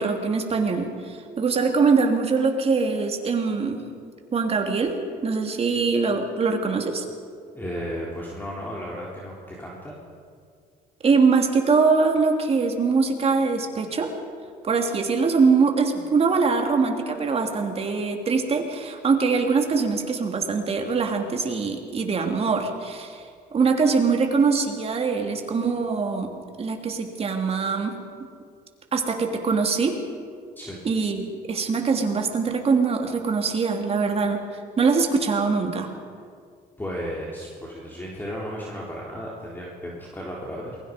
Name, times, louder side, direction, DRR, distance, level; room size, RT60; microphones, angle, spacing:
voice 1, 0.0-3.8 4.3-7.0 11.0-14.1 14.6-23.2 23.5-26.3 26.6-27.9 28.9-30.0 30.8-34.4 34.8-35.9, right 4 dB, 35° right, 3 dB, 3.1 m, -23 dB
voice 2, 7.5-10.0 30.6-30.8 36.8-40.7, equal, 10° left, -4 dB, 3.7 m, -34 dB
28.0 x 22.0 x 5.3 m, 2.2 s
cardioid pair, 110°, 17 cm